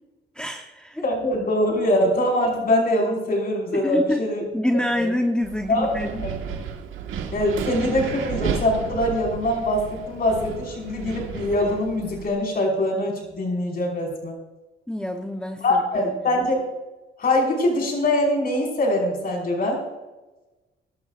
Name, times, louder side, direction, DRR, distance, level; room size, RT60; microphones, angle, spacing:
voice 1, 0.3-1.0 3.7-4.2 4.5-6.3 14.9-16.1, left 1 dB, 5° left, 2 dB, 1.0 m, -26 dB
voice 2, 1.0-4.4 4.7-5.1 5.7-6.3 7.3-14.4 15.6-16.6 17.2-19.8, left 1 dB, 50° left, 0 dB, 5.4 m, -23 dB
Wind, 5.4-12.3, right 7 dB, 85° right, 1.7 m, -33 dB
22.0 x 12.5 x 2.6 m, 1.1 s
cardioid pair, 90°, 20 cm